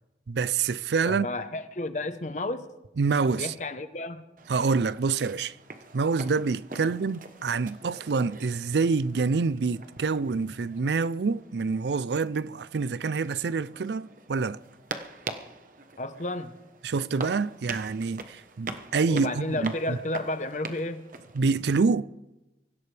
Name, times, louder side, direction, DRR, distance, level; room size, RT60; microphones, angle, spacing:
voice 1, 0.3-1.3 3.0-3.5 4.5-5.6 5.9-14.6 16.8-20.0 21.3-22.1, right 4 dB, 75° right, 0.5 m, -27 dB
voice 2, 1.0-2.7 3.3-4.2 6.8-6.9 16.0-16.6 19.1-21.0, left 2 dB, 45° left, 1.0 m, -32 dB
sound 1, 4.4-21.8, right 3 dB, 50° right, 1.1 m, -44 dB
24.0 x 15.5 x 3.4 m
head